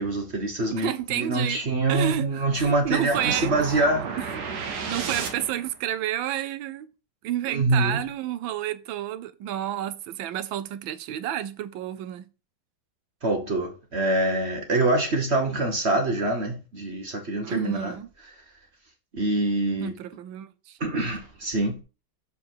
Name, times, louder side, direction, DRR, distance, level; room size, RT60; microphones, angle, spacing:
voice 1, 0.0-4.1 7.4-8.0 13.2-17.9 19.1-19.9 20.8-21.8, right 2 dB, 40° right, 1.2 m, -25 dB
voice 2, 0.7-1.6 1.9-4.4 4.9-6.9 7.2-12.3 17.4-18.1 19.8-20.8, right 12 dB, 80° right, 1.4 m, -30 dB
sound 1, 3.1-5.8, right 5 dB, 60° right, 1.5 m, -33 dB
7.0 x 4.8 x 4.5 m
omnidirectional pair, 2.2 m